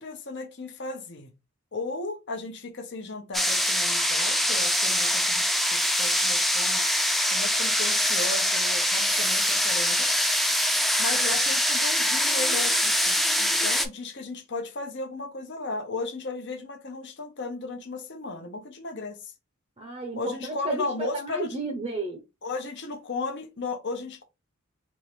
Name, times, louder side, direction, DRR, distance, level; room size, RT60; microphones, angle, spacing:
voice 1, 0.0-1.3 1.7-6.8 7.3-10.3 11.0-19.3 20.2-21.6 22.4-24.2, left 3 dB, 55° left, 0.9 m, -35 dB
sound 1, 3.3-13.9, equal, ahead, 0.3 m, -24 dB
voice 2, 19.8-22.2, right 2 dB, 25° right, 0.7 m, -32 dB
3.6 x 3.1 x 3.1 m
head